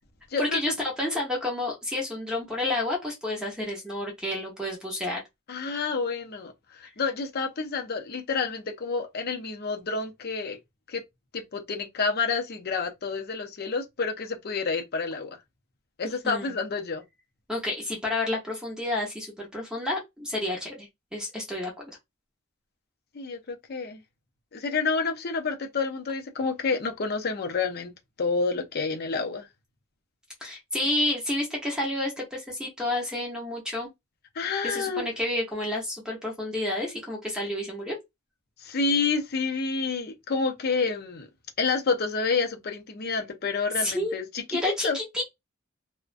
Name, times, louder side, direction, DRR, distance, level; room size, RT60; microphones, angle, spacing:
voice 1, 0.4-5.2 16.2-16.5 17.5-21.9 30.4-33.9 34.6-38.0 43.8-44.2 44.5-45.2, left 1 dB, 5° right, 0.7 m, -30 dB
voice 2, 5.5-6.5 6.8-10.6 10.9-11.0 11.3-15.4 16.0-17.0 23.1-24.0 24.5-27.9 28.2-29.5 34.4-35.1 38.6-41.3 41.6-45.0, left 4 dB, 50° left, 0.5 m, -29 dB
2.4 x 2.1 x 2.4 m
head